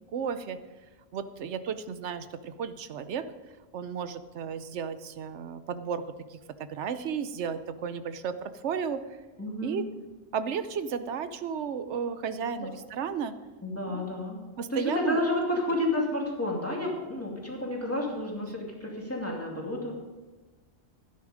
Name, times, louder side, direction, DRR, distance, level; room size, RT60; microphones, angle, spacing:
voice 1, 0.1-0.6 1.1-3.3 3.7-6.0 6.3-9.0 9.6-9.8 10.3-13.4 13.9-14.1 14.6-15.2, right 7 dB, 85° right, 12 dB, 1.0 m, -33 dB
voice 2, 9.4-9.8 12.6-12.7 13.6-14.4 14.7-19.9, left 1 dB, 10° left, -2 dB, 2.4 m, -30 dB
12.5 x 10.0 x 5.0 m, 1.2 s
omnidirectional pair, 1.2 m